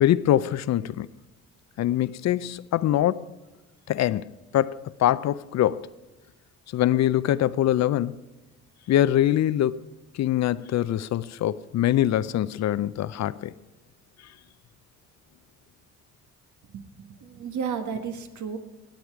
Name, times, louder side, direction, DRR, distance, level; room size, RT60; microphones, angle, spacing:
voice 1, 0.0-1.1 1.8-3.3 3.9-5.9 6.7-8.2 8.9-9.9 10.1-13.5, left 12 dB, 65° left, 0.5 m, -23 dB
voice 2, 16.7-18.6, right 6 dB, 70° right, 1.7 m, -33 dB
19.5 x 8.0 x 4.7 m
cardioid pair, 90°, 30 cm